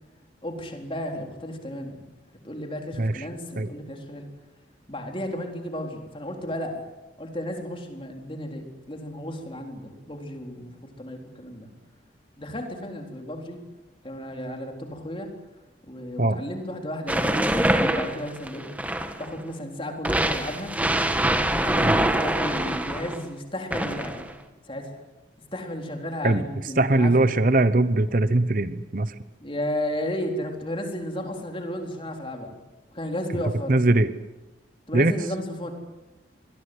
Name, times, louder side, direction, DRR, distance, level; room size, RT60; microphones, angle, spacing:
voice 1, 0.4-2.0 2.4-4.3 4.9-6.9 7.2-10.7 11.0-11.7 12.4-13.6 14.0-15.3 15.9-20.7 21.6-24.3 24.7-25.0 25.5-27.4 29.4-32.5 32.9-33.8 34.9-35.7, left 1 dB, 30° left, 3 dB, 4.0 m, -33 dB
sound 1, 17.1-19.3 20.0-23.2 23.7-24.3, right 1 dB, 10° right, 1.5 m, -24 dB
voice 2, 26.8-29.1 33.7-34.1 34.9-35.1, right 2 dB, 45° right, 13 dB, 0.9 m, -21 dB
26.5 x 21.5 x 8.1 m, 1.1 s
head